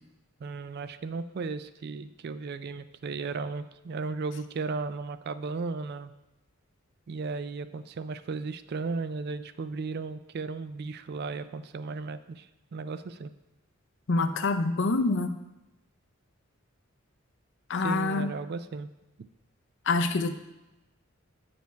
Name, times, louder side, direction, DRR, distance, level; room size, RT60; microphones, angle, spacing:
voice 1, 0.4-6.1 7.1-12.5 12.7-13.3 17.8-18.9, right 4 dB, 50° right, 12 dB, 0.4 m, -35 dB
voice 2, 14.1-15.4 17.7-18.3 19.9-20.3, left 3 dB, 60° left, 9 dB, 0.6 m, -26 dB
8.2 x 5.2 x 4.5 m, 0.97 s
head